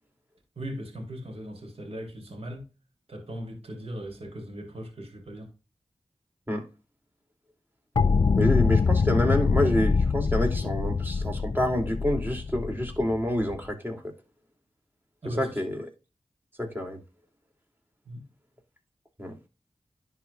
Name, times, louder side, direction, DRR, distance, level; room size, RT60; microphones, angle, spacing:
voice 1, 0.5-2.7 3.1-5.5 15.2-15.6 18.0-18.2, equal, 70° right, 3.1 m, -38 dB
sound 1, 8.0-13.6, left 5 dB, 50° left, 0.4 m, -24 dB
voice 2, 8.4-14.0 15.4-15.8 16.6-17.0 19.2-19.3, left 1 dB, 20° right, 2.9 m, -27 dB
11.0 x 4.7 x 2.4 m
cardioid pair, 40°, 11 cm